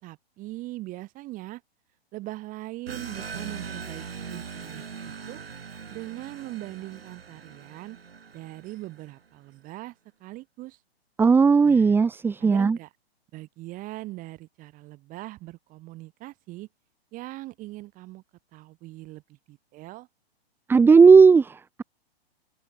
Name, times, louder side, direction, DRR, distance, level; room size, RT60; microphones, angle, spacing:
voice 1, 0.0-1.6 2.1-4.0 4.3-5.4 5.9-8.0 8.3-10.8 11.6-12.0 12.4-12.9 13.3-16.7 17.1-18.2 18.5-20.1, right 18 dB, 25° right, 3.9 m, -40 dB
sound 1, 2.9-9.1, right 6 dB, 65° right, 7.1 m, -40 dB
voice 2, 11.2-12.8 20.7-21.8, right 5 dB, 5° right, 1.0 m, -16 dB
figure-of-eight pair, 115°, 32 cm